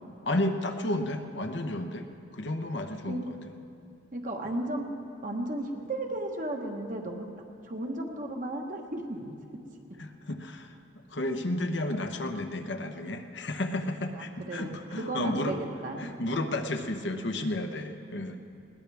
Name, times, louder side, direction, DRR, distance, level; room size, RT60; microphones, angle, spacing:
voice 1, 0.2-2.1 2.3-3.3 10.0-10.7 11.1-15.6 16.0-18.4, left 1 dB, 65° left, 5 dB, 1.0 m, -32 dB
voice 2, 4.1-4.9 5.2-7.3 7.6-9.4 14.1-16.1, right 1 dB, 45° right, 2 dB, 1.4 m, -34 dB
20.5 x 18.0 x 3.5 m, 2.6 s
head